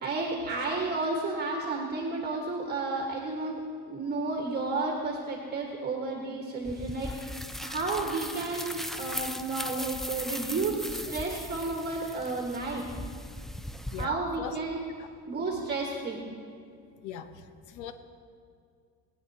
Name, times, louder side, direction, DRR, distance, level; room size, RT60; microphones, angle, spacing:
voice 1, 0.0-3.6 3.9-7.1 7.6-12.9 13.8-14.8 15.3-16.2, right 3 dB, 35° right, -1 dB, 1.5 m, -32 dB
sound 1, 6.6-14.0, equal, ahead, 0.3 m, -38 dB
voice 2, 13.9-14.6 15.0-15.1 17.0-17.9, left 8 dB, 75° left, 9 dB, 0.9 m, -40 dB
21.0 x 9.1 x 2.8 m, 2.3 s
cardioid pair, 105°, 30 cm